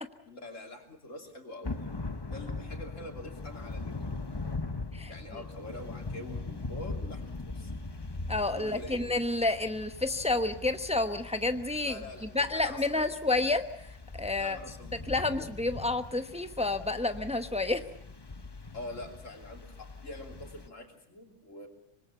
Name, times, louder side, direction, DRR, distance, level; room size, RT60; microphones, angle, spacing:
voice 1, 0.3-2.0 2.3-4.4 5.1-7.7 8.5-9.1 11.8-13.0 14.4-15.4 18.7-21.7, left 2 dB, 85° left, 2 dB, 3.5 m, -45 dB
Thunder / Rain, 1.6-20.7, left 3 dB, 20° left, 0.9 m, -41 dB
voice 2, 4.9-5.4 8.3-12.0 12.3-13.9 14.1-14.6 15.1-17.8, left 2 dB, 5° right, 8 dB, 0.8 m, -30 dB
25.5 x 20.5 x 7.1 m, 0.76 s
omnidirectional pair, 1.3 m